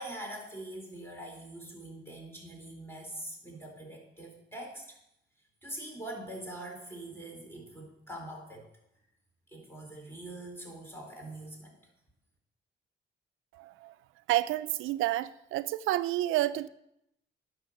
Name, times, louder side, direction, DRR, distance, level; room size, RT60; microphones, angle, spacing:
voice 1, 0.0-5.0 5.6-8.7 9.5-11.8, right 1 dB, 10° left, 4.1 m, -43 dB
voice 2, 14.3-16.7, right 15 dB, 85° right, 0.4 m, -29 dB
11.0 x 6.2 x 6.5 m
cardioid pair, 90°, 20 cm